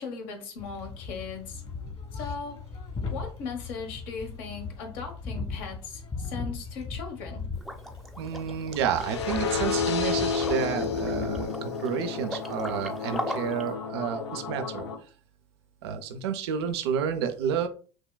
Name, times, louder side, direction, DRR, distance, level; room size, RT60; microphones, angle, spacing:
voice 1, 0.0-1.6 2.1-2.6 3.1-7.4, left 5 dB, 65° left, 3 dB, 1.1 m, -38 dB
sound 1, 0.6-11.5, left 4 dB, 40° left, 1.4 m, -38 dB
Liquid, 7.6-13.7, equal, ahead, 0.6 m, -40 dB
voice 2, 8.2-14.8 15.8-17.7, right 7 dB, 75° right, 7 dB, 0.4 m, -30 dB
sound 2, 9.0-14.9, left 5 dB, 85° left, 0.4 m, -31 dB
6.0 x 2.2 x 2.2 m, 0.39 s
hypercardioid pair, 65°, 14 cm